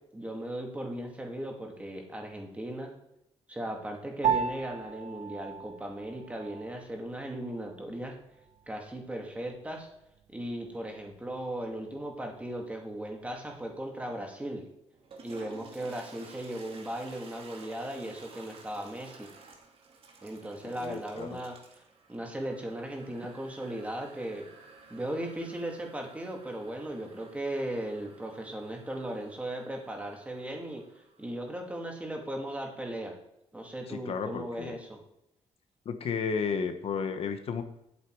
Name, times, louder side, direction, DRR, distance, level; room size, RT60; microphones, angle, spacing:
voice 1, 0.1-2.9 3.5-8.2 8.7-9.9 10.3-14.6 15.2-19.3 20.2-21.6 22.1-24.5 24.9-30.8 31.2-33.2 33.5-35.0, right 1 dB, 10° right, 1 dB, 2.2 m, -37 dB
Piano, 4.2-13.9, right 7 dB, 80° right, 0.9 m, -38 dB
Toilet flush, 14.9-31.7, right 4 dB, 55° right, 2.2 m, -54 dB
voice 2, 20.6-21.4 33.9-34.7 35.8-37.6, left 6 dB, 60° left, 8 dB, 1.0 m, -33 dB
10.0 x 8.5 x 4.7 m, 0.83 s
cardioid pair, 135°, 12 cm